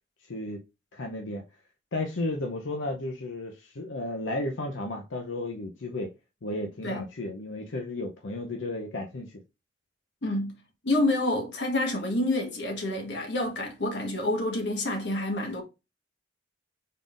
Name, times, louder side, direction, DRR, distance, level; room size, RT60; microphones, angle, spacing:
voice 1, 0.3-0.6 0.9-1.4 1.9-6.1 6.4-9.4, left 2 dB, 85° left, 0.7 m, -33 dB
voice 2, 10.2-10.5 10.8-15.6, left 1 dB, 65° left, 1.3 m, -28 dB
5.4 x 3.8 x 2.5 m
head